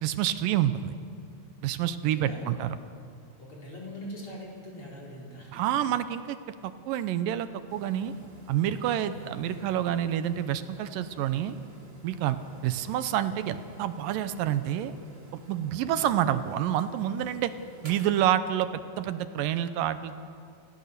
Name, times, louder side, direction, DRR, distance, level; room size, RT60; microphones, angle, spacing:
voice 1, 0.0-0.9 1.6-2.7 5.5-6.4 6.6-8.1 8.5-11.6 12.0-12.4 12.6-14.9 15.3-17.5 17.8-20.1, right 11 dB, 80° right, 11 dB, 2.3 m, -28 dB
voice 2, 2.0-2.7 3.4-5.7 9.1-9.7 12.6-13.0, equal, 35° left, -3 dB, 4.9 m, -43 dB
sound 1, 7.7-18.1, right 2 dB, 30° right, 1.2 m, -51 dB
28.0 x 16.5 x 6.7 m, 2.3 s
omnidirectional pair, 4.2 m